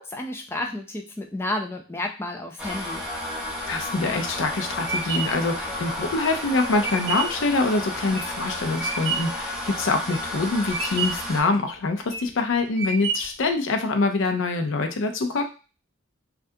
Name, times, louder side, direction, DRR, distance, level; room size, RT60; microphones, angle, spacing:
voice 1, 0.0-3.1, left 1 dB, 10° left, 3 dB, 0.3 m, -31 dB
sound 1, 2.6-11.4, left 1 dB, 5° right, 0.8 m, -32 dB
voice 2, 3.7-15.4, left 3 dB, 65° left, 5 dB, 0.5 m, -25 dB
sound 2, 4.3-9.4 9.9-10.4 10.7-11.4 11.9-12.3 12.8-13.5, right 5 dB, 60° right, 0.8 m, -30 dB
3.4 x 2.4 x 2.6 m, 0.33 s
head